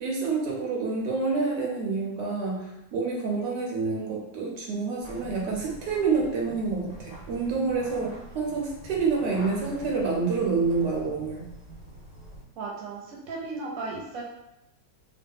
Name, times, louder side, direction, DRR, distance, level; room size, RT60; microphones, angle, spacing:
voice 1, 0.0-11.5, right 4 dB, 85° right, -2 dB, 1.4 m, -28 dB
sound 1, 5.0-12.4, right 2 dB, 5° right, 0.6 m, -45 dB
voice 2, 12.6-14.2, right 3 dB, 60° right, -2 dB, 1.1 m, -35 dB
3.1 x 2.3 x 3.5 m, 0.86 s
omnidirectional pair, 1.9 m